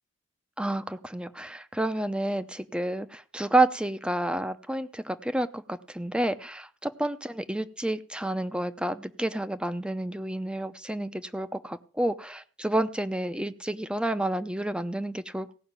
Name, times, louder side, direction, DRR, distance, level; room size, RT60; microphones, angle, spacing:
voice 1, 0.6-15.5, right 1 dB, 5° right, 12 dB, 0.7 m, -30 dB
17.0 x 5.8 x 8.9 m, 0.42 s
head